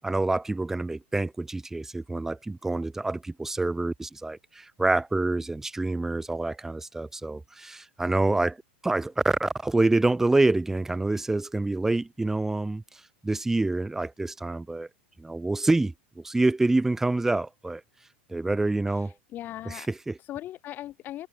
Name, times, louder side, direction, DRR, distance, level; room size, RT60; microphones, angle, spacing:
voice 1, 0.0-8.6 8.8-12.8 13.2-14.9 15.2-17.8 18.3-19.1 19.7-20.1, right 2 dB, 5° right, 0.6 m, -26 dB
voice 2, 18.9-19.9 20.2-21.3, left 13 dB, 35° left, 0.6 m, -39 dB
figure-of-eight pair, 95°, 6 cm